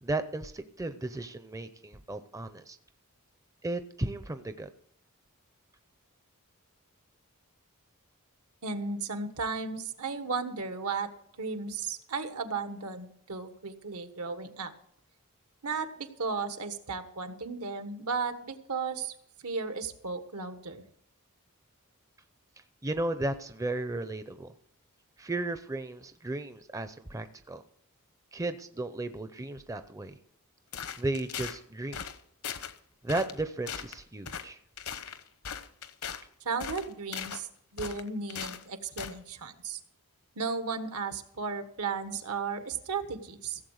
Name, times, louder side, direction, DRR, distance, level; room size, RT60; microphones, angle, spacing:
voice 1, 0.0-2.8 3.6-4.7 22.8-24.5 25.2-27.6 28.3-30.1 31.0-32.0 33.0-34.6, right 2 dB, 15° right, 10 dB, 0.6 m, -34 dB
voice 2, 8.6-11.1 11.4-14.7 15.6-19.1 19.4-20.8 36.4-37.5 37.7-39.8 40.3-43.6, right 4 dB, 80° right, 8 dB, 1.4 m, -35 dB
sound 1, 30.7-31.6 31.9-32.2 32.4-32.7 33.1-33.4 33.7-34.0 34.3-34.5 34.8-36.2 36.6-37.4 37.8-38.6 39.0-39.2, left 7 dB, 70° left, 1.0 m, -38 dB
16.0 x 7.4 x 6.4 m, 0.68 s
head